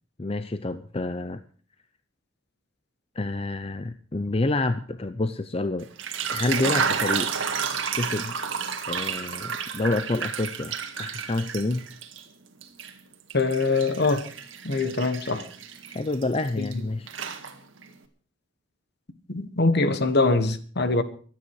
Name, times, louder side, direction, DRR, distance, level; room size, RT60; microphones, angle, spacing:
voice 1, 0.2-1.4 3.2-5.9 6.3-7.6 7.9-8.4 8.9-11.9 15.9-17.1, left 2 dB, 30° left, 0.6 m, -28 dB
sound 1, 5.8-12.2 12.6-16.7 17.1-17.9, right 6 dB, 65° right, 1.9 m, -31 dB
voice 2, 13.3-14.2 14.6-15.5 16.6-16.7 19.3-21.0, left 3 dB, 55° left, 1.4 m, -23 dB
24.0 x 9.4 x 4.8 m
head